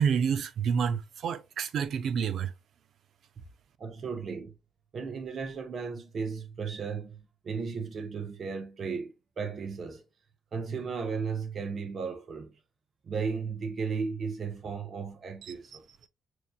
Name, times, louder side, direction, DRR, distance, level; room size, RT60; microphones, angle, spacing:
voice 1, 0.0-2.5 15.4-15.5, right 7 dB, 65° right, 0.5 m, -28 dB
voice 2, 3.8-4.5 4.9-10.0 10.5-12.6 13.0-15.8, right 5 dB, 50° right, 0.9 m, -35 dB
6.1 x 2.8 x 2.2 m
cardioid pair, 90°, 0 cm